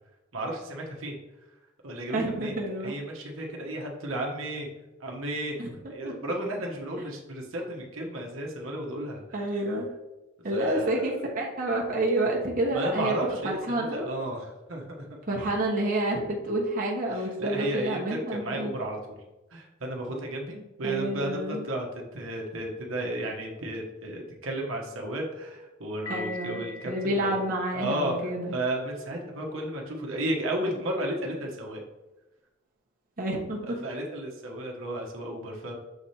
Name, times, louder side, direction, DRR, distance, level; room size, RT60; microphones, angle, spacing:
voice 1, 0.3-1.1 1.8-2.5 2.8-4.7 5.0-5.5 5.9-9.5 10.5-11.1 12.7-15.2 17.1-19.2 19.5-27.4 27.7-31.8 33.6-35.7, right 1 dB, 70° right, 0 dB, 1.2 m, -33 dB
voice 2, 2.1-2.9 5.6-5.7 6.0-6.1 9.3-9.9 10.4-13.1 13.4-14.1 15.3-18.7 20.8-21.6 26.1-28.5 33.2-33.8, right 1 dB, 40° right, -2 dB, 1.1 m, -29 dB
Piano, 26.1-28.0, left 3 dB, 65° left, 0.6 m, -42 dB
6.9 x 3.4 x 4.3 m, 1.1 s
head